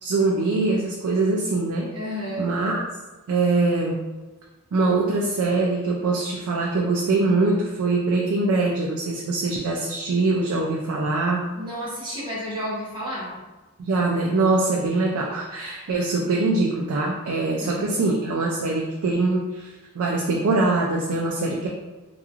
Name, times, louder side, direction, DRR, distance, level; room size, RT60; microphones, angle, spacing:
voice 1, 0.0-1.9 2.4-2.8 3.3-4.0 4.7-11.4 13.8-21.7, right 3 dB, 75° right, -1 dB, 0.3 m, -23 dB
voice 2, 1.9-2.5 11.6-13.4 17.6-18.0, equal, 20° right, -7 dB, 0.7 m, -31 dB
2.9 x 2.3 x 2.3 m, 1.2 s
head